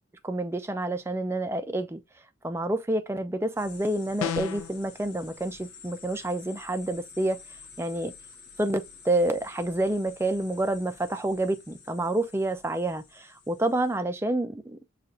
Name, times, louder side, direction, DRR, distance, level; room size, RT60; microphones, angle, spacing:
voice 1, 0.2-2.0 2.4-7.4 7.8-8.1 8.6-14.9, right 1 dB, 10° right, 0.4 m, -28 dB
sound 1, 3.6-14.0, left 5 dB, 55° left, 1.0 m, -50 dB
sound 2, 4.2-4.7, left 8 dB, 85° left, 0.3 m, -30 dB
6.5 x 2.4 x 2.6 m
head